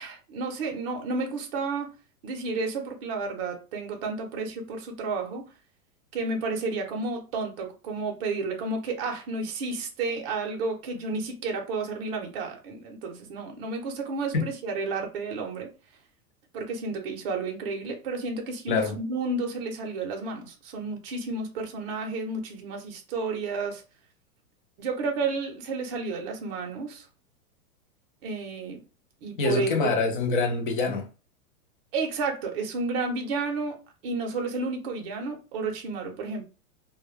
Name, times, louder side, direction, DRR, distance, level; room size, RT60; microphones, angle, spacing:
voice 1, 0.0-1.9 2.2-5.4 6.1-15.7 16.5-23.8 24.8-27.1 28.2-28.8 29.2-29.9 31.9-33.8 34.0-36.4, right 3 dB, 40° right, 0.6 m, -31 dB
voice 2, 29.4-31.1, left 4 dB, 35° left, 0.4 m, -25 dB
2.2 x 2.0 x 3.0 m
supercardioid pair, 165°, 44 cm